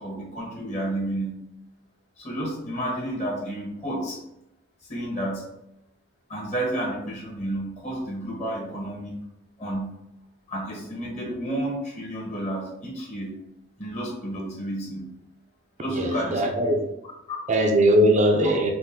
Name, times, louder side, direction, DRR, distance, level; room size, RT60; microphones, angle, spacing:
voice 1, 0.0-1.3 2.2-4.2 4.9-5.4 6.3-9.2 9.6-9.9 10.5-13.3 13.8-15.1 15.8-16.4 17.3-17.4 17.9-18.0, right 1 dB, 35° left, -2 dB, 1.4 m, -31 dB
voice 2, 15.9-16.8 17.5-18.7, right 1 dB, 35° right, 2 dB, 0.5 m, -20 dB
5.2 x 2.4 x 3.7 m, 0.85 s
head